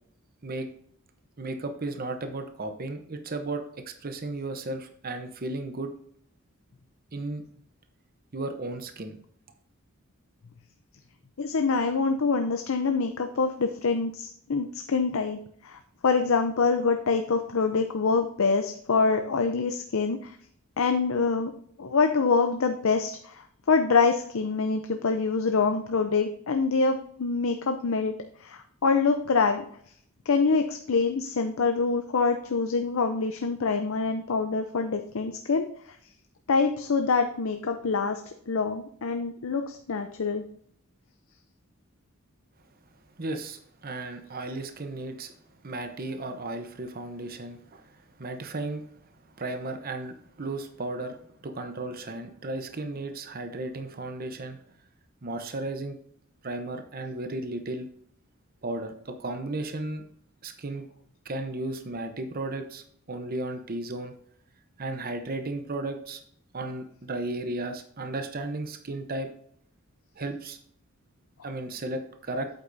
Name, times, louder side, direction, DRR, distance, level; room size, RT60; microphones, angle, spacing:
voice 1, 1.4-5.9 7.1-7.4 8.3-9.2 43.2-45.3 45.6-48.8 49.4-54.6 55.2-56.0 56.4-57.9 58.6-60.0 60.4-60.9 61.2-64.1 64.8-66.2 66.5-69.3 70.2-70.6 71.4-72.5, right 2 dB, 45° right, 6 dB, 0.8 m, -34 dB
voice 2, 11.4-20.4 20.8-21.5 21.8-28.1 28.4-29.6 30.3-36.0 36.5-38.2 38.5-40.4, left 4 dB, 70° left, 6 dB, 0.6 m, -25 dB
8.1 x 8.1 x 2.6 m, 0.64 s
head